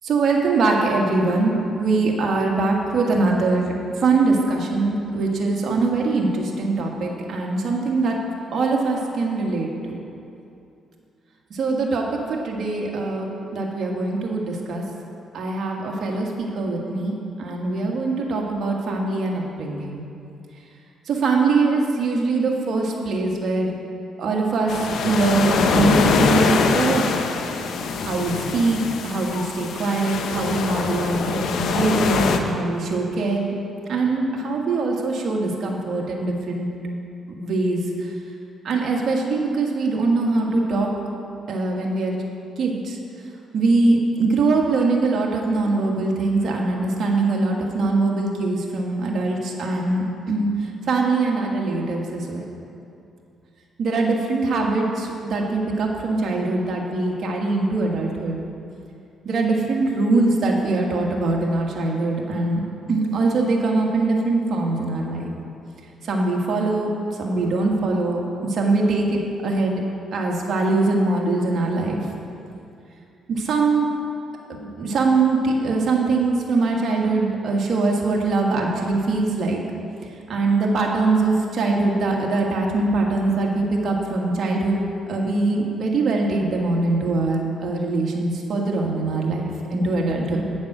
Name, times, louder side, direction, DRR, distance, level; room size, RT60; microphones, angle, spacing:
voice 1, 0.0-3.7 4.0-8.2 8.5-9.9 11.5-14.8 15.3-20.0 21.1-23.8 24.2-27.2 28.0-33.5 33.9-36.7 37.3-38.1 38.6-40.9 41.5-42.2 42.6-43.0 43.5-50.5 50.9-52.4 53.8-58.4 59.2-62.6 62.9-65.3 66.0-66.9 67.2-69.8 70.1-72.0 73.3-73.9 74.5-79.6 80.3-90.5, right 3 dB, 60° right, -1 dB, 1.6 m, -22 dB
sound 1, 24.7-32.4, left 5 dB, 70° left, 0.7 m, -23 dB
8.9 x 7.3 x 6.1 m, 2.6 s
cardioid pair, 90°, 0 cm